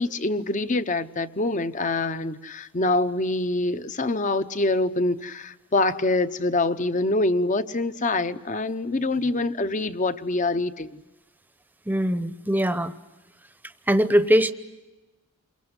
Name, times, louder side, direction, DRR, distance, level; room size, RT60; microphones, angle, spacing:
voice 1, 0.0-11.0, left 2 dB, 35° left, 0.8 m, -25 dB
voice 2, 11.9-12.9 13.9-14.5, equal, 10° right, 0.8 m, -21 dB
29.0 x 23.0 x 8.1 m
head